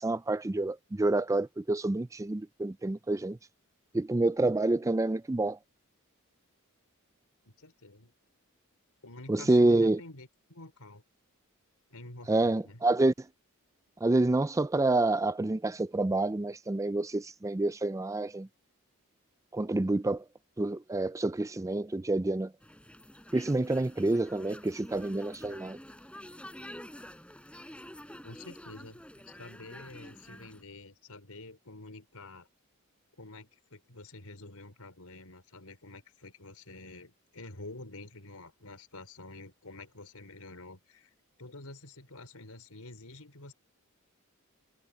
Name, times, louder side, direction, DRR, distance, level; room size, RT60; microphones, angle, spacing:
voice 1, 0.0-3.4 3.9-5.6 9.3-10.0 12.3-13.1 14.0-18.5 19.5-20.2 20.6-22.5 23.3-25.8, right 2 dB, 15° right, 0.4 m, -28 dB
voice 2, 7.4-8.1 9.0-11.0 11.9-12.8 28.2-32.5 33.2-41.1 41.4-43.5, left 2 dB, 85° left, 4.7 m, -48 dB
sound 1, 22.6-30.6, equal, 5° left, 7.8 m, -48 dB
head